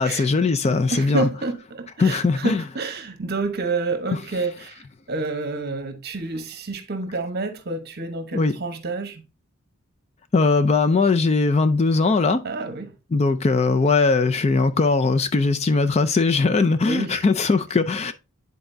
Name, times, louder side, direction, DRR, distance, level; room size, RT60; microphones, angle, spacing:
voice 1, 0.0-1.3 2.0-2.6 8.3-8.5 10.3-12.4 13.1-18.1, left 3 dB, 30° left, 0.4 m, -20 dB
voice 2, 0.9-4.8 5.1-9.2 12.4-12.9 16.9-17.2, right 3 dB, 45° right, 1.0 m, -28 dB
10.0 x 4.0 x 2.6 m
head